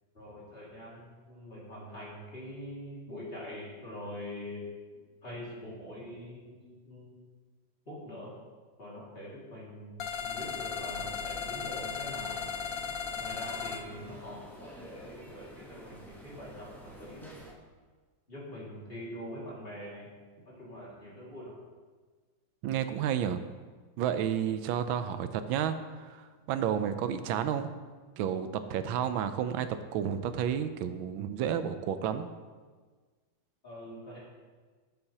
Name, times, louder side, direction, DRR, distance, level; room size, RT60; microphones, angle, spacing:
voice 1, 0.1-4.7 5.2-7.2 7.9-8.3 8.8-12.5 13.2-17.3 18.3-20.1 20.4-21.5 33.6-34.2, equal, 30° left, -6 dB, 2.4 m, -44 dB
sound 1, 10.0-13.8, left 6 dB, 65° left, 0.8 m, -36 dB
sound 2, 10.3-17.5, equal, ahead, 0.5 m, -50 dB
voice 2, 22.6-23.4 24.0-27.7 28.2-29.7 29.9-32.3, right 9 dB, 85° right, 10 dB, 1.4 m, -31 dB
11.5 x 7.8 x 2.8 m, 1.4 s
omnidirectional pair, 2.1 m